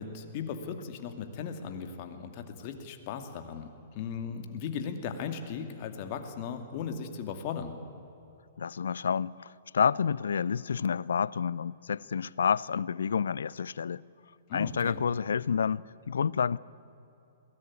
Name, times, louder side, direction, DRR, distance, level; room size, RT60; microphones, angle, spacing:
voice 1, 0.0-3.7 3.9-7.7 14.5-15.0, left 6 dB, 45° left, 2.5 m, -37 dB
voice 2, 8.6-14.0 14.5-16.6, left 6 dB, 70° left, 0.5 m, -29 dB
22.0 x 18.0 x 9.7 m
figure-of-eight pair, 115°, 0 cm